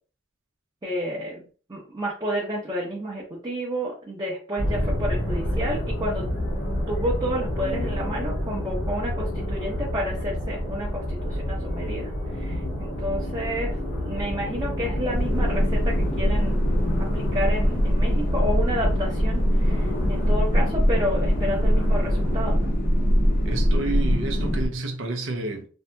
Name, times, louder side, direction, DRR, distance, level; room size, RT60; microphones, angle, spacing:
voice 1, 0.8-6.3 6.9-16.6 17.0-22.7, equal, 25° right, 0.7 m, -30 dB
sound 1, 4.6-22.5, equal, 85° left, 1.1 m, -29 dB
sound 2, 15.1-24.7, equal, 45° left, 0.6 m, -22 dB
voice 2, 23.4-25.7, right 2 dB, 85° right, 0.6 m, -30 dB
2.7 x 2.7 x 2.2 m
head